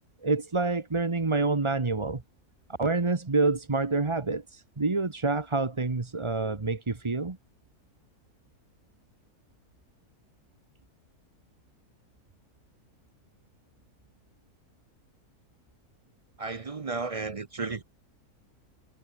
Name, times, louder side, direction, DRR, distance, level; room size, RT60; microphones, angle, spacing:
voice 1, 0.2-2.2 2.8-7.4, right 3 dB, 20° right, 1.1 m, -27 dB
voice 2, 16.4-17.8, right 4 dB, 40° right, 0.5 m, -33 dB
omnidirectional pair, 1.6 m